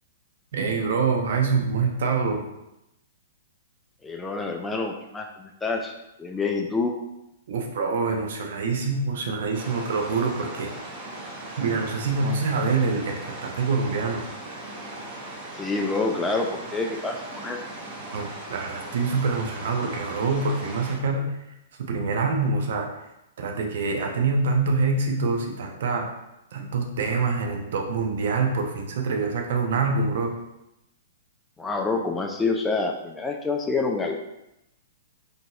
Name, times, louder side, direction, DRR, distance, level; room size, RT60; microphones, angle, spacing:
voice 1, 0.5-2.4 7.5-10.7 11.6-14.2 18.1-21.4 21.8-22.9 23.4-26.1 26.5-30.4, right 4 dB, 60° right, 3 dB, 0.6 m, -25 dB
voice 2, 4.0-5.9 6.2-6.9 15.6-17.6 31.6-34.2, left 3 dB, 10° left, 2 dB, 0.3 m, -27 dB
sound 1, 9.5-21.0, right 2 dB, 30° right, 1.1 m, -38 dB
3.8 x 2.6 x 2.3 m, 0.88 s
figure-of-eight pair, 115°, 0 cm